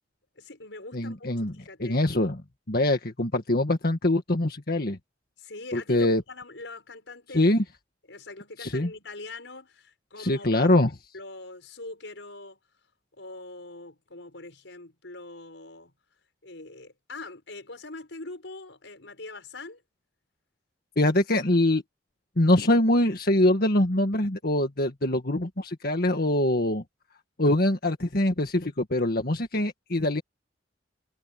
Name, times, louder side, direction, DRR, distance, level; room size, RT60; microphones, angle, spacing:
voice 1, 0.4-2.0 5.4-7.6 8.1-10.7 11.1-12.6 13.2-15.9 16.4-19.8, left 2 dB, 90° left, 5.4 m, -43 dB
voice 2, 0.9-1.5 1.8-2.4 2.7-5.0 5.7-6.2 7.3-7.6 8.6-8.9 10.2-10.9 21.0-21.8 22.4-26.8 27.4-30.2, left 1 dB, 55° left, 1.8 m, -23 dB
head